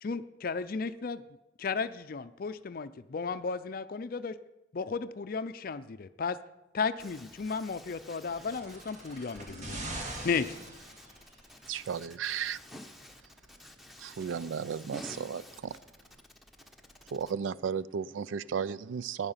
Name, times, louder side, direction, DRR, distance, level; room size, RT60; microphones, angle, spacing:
voice 1, 0.0-1.2 1.6-4.4 4.7-6.4 6.7-9.8 10.2-10.5, left 5 dB, 50° left, 13 dB, 0.4 m, -34 dB
voice 2, 7.0-8.6 10.1-11.1 11.5-13.2 13.6-15.8, equal, ahead, 4 dB, 1.1 m, -50 dB
sound 1, 8.2-11.5 12.5-12.6, right 1 dB, 40° right, 1.9 m, -42 dB
voice 3, 11.7-12.6 14.0-15.7 17.1-19.3, right 7 dB, 80° right, 18 dB, 0.4 m, -34 dB
12.0 x 9.6 x 5.6 m, 0.93 s
head